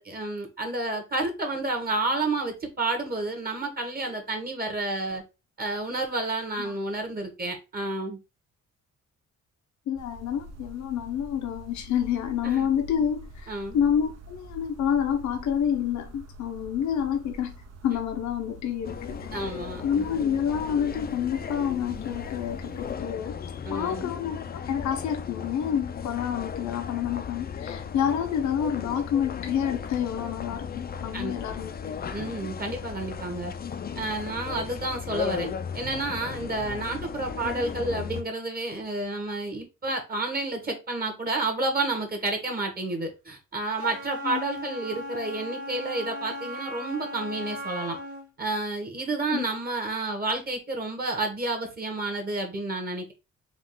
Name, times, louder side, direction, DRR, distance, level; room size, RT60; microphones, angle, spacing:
voice 1, 0.0-5.2 5.6-8.2 12.4-12.7 13.5-13.8 19.3-20.1 23.6-24.1 31.1-31.3 32.1-33.5 33.9-35.5 35.7-48.0 48.4-53.1, right 2 dB, 30° right, 1.1 m, -30 dB
voice 2, 9.9-17.5 17.8-19.3 19.8-23.4 23.7-30.7 31.0-32.0 44.2-44.4 49.3-49.4, left 8 dB, 70° left, 0.7 m, -28 dB
sound 1, 10.0-22.9, right 1 dB, 60° right, 0.7 m, -46 dB
sound 2, 18.8-38.2, left 7 dB, 30° left, 0.4 m, -36 dB
Wind instrument woodwind instrument, 43.8-48.3, left 1 dB, 75° right, 1.6 m, -37 dB
3.7 x 2.4 x 3.6 m
cardioid pair, 90°, 30 cm